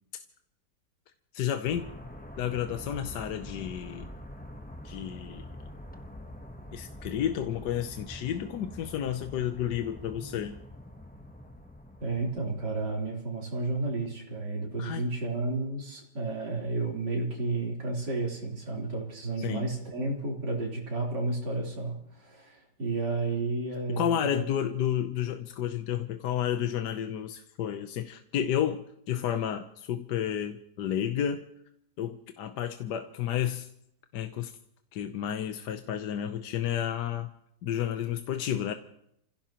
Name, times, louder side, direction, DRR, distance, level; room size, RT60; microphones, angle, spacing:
voice 1, 1.3-1.9 2.4-4.1 4.8-5.4 6.7-10.6 14.8-15.0 19.4-19.7 23.9-31.5 32.0-33.7 34.1-34.5 34.9-37.3 37.6-38.7, left 10 dB, 80° left, 7 dB, 1.4 m, -31 dB
sound 1, 1.7-13.3, left 1 dB, 5° left, 0.8 m, -45 dB
voice 2, 12.0-24.5, right 3 dB, 80° right, -3 dB, 4.2 m, -32 dB
29.5 x 16.0 x 3.0 m, 0.74 s
omnidirectional pair, 1.8 m